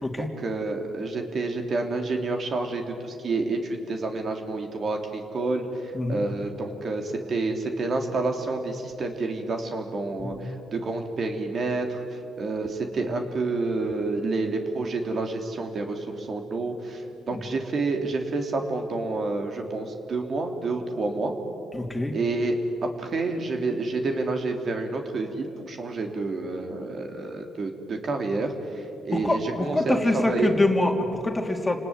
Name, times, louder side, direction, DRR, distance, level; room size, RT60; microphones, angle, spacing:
voice 1, 0.2-12.0 12.4-21.3 22.1-28.5 29.0-30.5, right 3 dB, 50° right, 4 dB, 3.4 m, -29 dB
voice 2, 21.7-22.1 29.1-31.8, left 2 dB, 15° left, 3 dB, 3.0 m, -25 dB
29.5 x 19.0 x 9.6 m, 2.7 s
cardioid pair, 90°, 0 cm